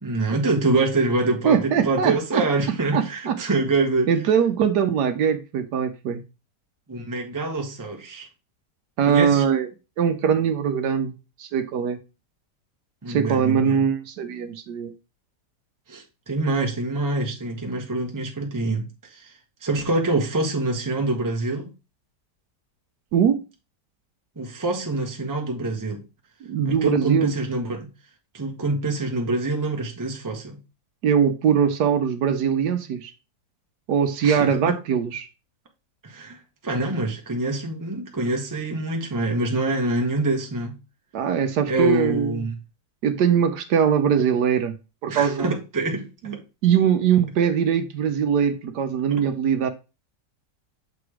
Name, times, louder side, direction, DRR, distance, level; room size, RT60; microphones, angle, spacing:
voice 1, 0.0-4.1 6.9-8.3 9.1-9.4 13.0-13.8 15.9-19.3 19.6-21.7 24.4-26.0 26.6-27.9 28.3-30.6 34.2-34.7 36.0-40.8 41.7-42.6 45.1-46.4, right 2 dB, 15° right, 0.8 m, -25 dB
voice 2, 1.4-2.4 2.9-3.4 4.1-6.2 9.0-9.7 10.0-11.1 11.4-12.0 13.1-14.9 23.1-23.4 26.5-27.3 31.0-33.1 33.9-35.3 41.1-42.4 43.0-44.7 45.0-45.5 46.2-46.4 46.6-49.7, right 7 dB, 75° right, 1.2 m, -21 dB
6.9 x 3.0 x 4.8 m
omnidirectional pair, 1.9 m